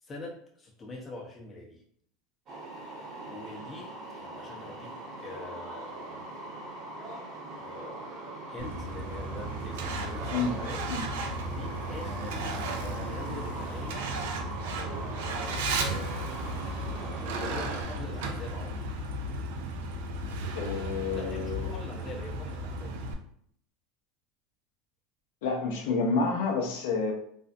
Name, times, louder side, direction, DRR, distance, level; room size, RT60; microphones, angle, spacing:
voice 1, 0.0-1.8 3.2-6.4 7.5-8.1 8.5-10.8 11.1-14.1 14.7-15.9 17.4-18.9 21.1-23.0, left 3 dB, 25° left, -2 dB, 0.7 m, -44 dB
sound 1, 2.5-17.8, right 2 dB, 45° right, 0.9 m, -41 dB
Truck, 8.6-23.1, right 2 dB, 80° right, 0.4 m, -35 dB
voice 2, 20.5-21.7 25.4-27.1, left 4 dB, 80° left, 0 dB, 0.5 m, -29 dB
2.5 x 2.1 x 2.5 m, 0.65 s
supercardioid pair, 110°, 0 cm